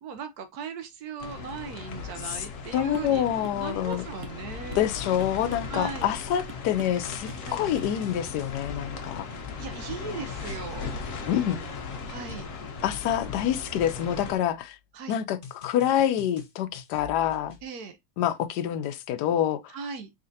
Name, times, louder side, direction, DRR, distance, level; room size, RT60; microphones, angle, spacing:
voice 1, 0.0-3.2 3.5-4.9 5.6-6.1 7.5-7.6 9.6-11.3 12.1-12.5 14.9-15.2 17.6-18.0 19.7-20.1, right 5 dB, 70° right, 1.1 m, -38 dB
sound 1, 1.2-14.3, left 5 dB, 70° left, 1.5 m, -38 dB
sound 2, 1.9-2.5 4.5-6.4 7.1-10.8 12.8-14.7 15.4-17.7, left 7 dB, 50° left, 0.6 m, -46 dB
voice 2, 2.7-4.0 4.7-9.3 11.3-11.6 12.8-14.8 15.1-17.5 18.2-19.7, left 10 dB, 90° left, 1.2 m, -27 dB
sound 3, 2.9-3.2 3.4-3.6 3.9-4.9 5.2-5.7 6.0-6.2 6.5-7.0 7.3-7.5 7.8-7.9, right 4 dB, 90° right, 1.4 m, -46 dB
4.1 x 3.8 x 2.6 m
omnidirectional pair, 1.7 m